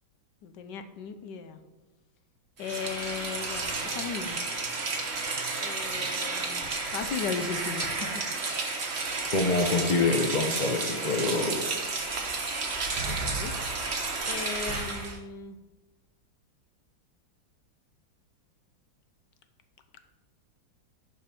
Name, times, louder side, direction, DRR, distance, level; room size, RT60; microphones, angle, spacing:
voice 1, 0.4-1.6 2.6-4.4 5.6-8.2 10.9-11.3 13.1-13.5 14.3-15.6, left 6 dB, 65° left, 9 dB, 1.3 m, -37 dB
Rain, 2.6-15.2, right 3 dB, 35° right, 1.3 m, -32 dB
voice 2, 9.3-11.6, left 3 dB, 50° left, 3 dB, 0.5 m, -26 dB
11.0 x 5.6 x 5.3 m, 1.2 s
omnidirectional pair, 2.2 m